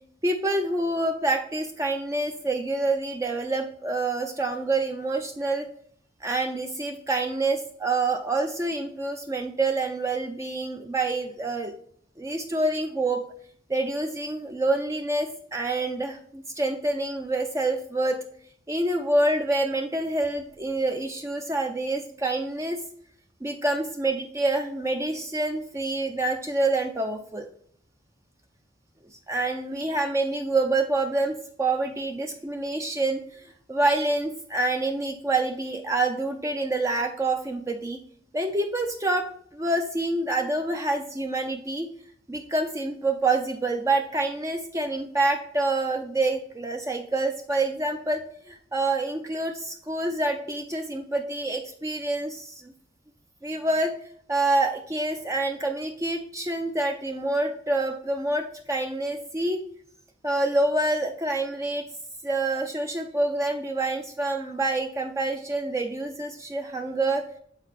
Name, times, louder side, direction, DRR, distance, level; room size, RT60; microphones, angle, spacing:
voice 1, 0.2-5.7 6.2-11.7 12.2-13.3 13.7-18.2 18.7-22.8 23.4-27.5 29.3-38.0 38.3-41.9 42.3-52.7 53.4-53.9 54.3-59.6 60.2-61.8 62.2-67.2, right 2 dB, 15° right, 4 dB, 0.4 m, -27 dB
8.0 x 4.1 x 4.1 m, 0.62 s
head